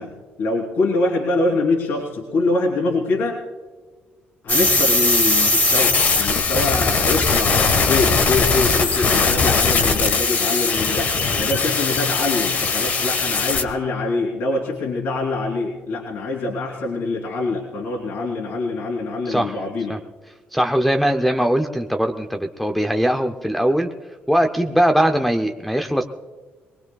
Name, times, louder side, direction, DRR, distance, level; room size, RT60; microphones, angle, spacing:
voice 1, 0.0-3.4 4.4-20.0, left 2 dB, 70° left, -2 dB, 2.9 m, -24 dB
sound 1, 4.5-13.6, left 4 dB, 45° left, 1.3 m, -19 dB
voice 2, 20.5-23.9 24.3-26.0, equal, ahead, 6 dB, 0.5 m, -20 dB
23.0 x 20.5 x 2.3 m, 1.4 s
cardioid pair, 165°, 4 cm